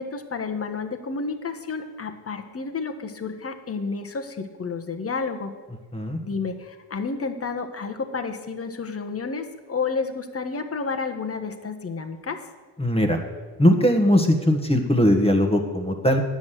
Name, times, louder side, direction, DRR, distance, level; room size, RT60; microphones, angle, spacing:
voice 1, 0.0-5.5 6.2-12.4, left 4 dB, 30° left, 6 dB, 1.3 m, -30 dB
voice 2, 12.8-13.2 13.6-16.2, equal, 10° left, 3 dB, 1.5 m, -20 dB
9.6 x 6.3 x 7.6 m, 1.4 s
supercardioid pair, 65°, 46 cm